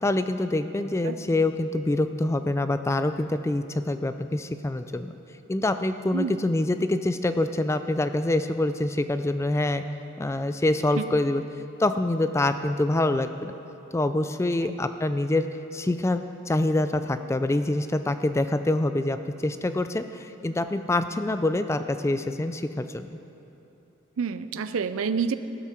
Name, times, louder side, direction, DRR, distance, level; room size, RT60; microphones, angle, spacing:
voice 1, 0.0-5.1 5.5-9.8 10.2-11.4 11.8-13.5 13.9-15.5 15.7-23.1, left 2 dB, 15° left, 10 dB, 0.3 m, -25 dB
voice 2, 6.1-6.5 11.0-11.1 14.6-14.7 24.2-25.3, right 6 dB, 85° right, 12 dB, 0.5 m, -28 dB
15.0 x 12.0 x 4.4 m, 2.9 s
head